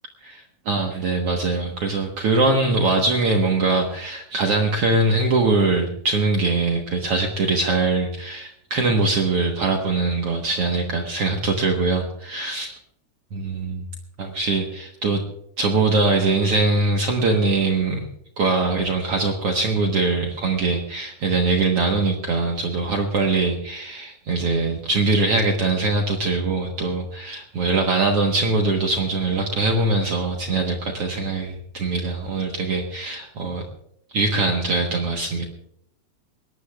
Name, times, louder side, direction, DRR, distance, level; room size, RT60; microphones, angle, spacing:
voice 1, 0.2-12.7 13.3-13.9 14.2-15.2 15.6-18.1 18.4-33.6 34.1-35.5, right 3 dB, 80° right, 2 dB, 1.3 m, -22 dB
22.0 x 18.5 x 2.4 m, 0.73 s
omnidirectional pair, 4.9 m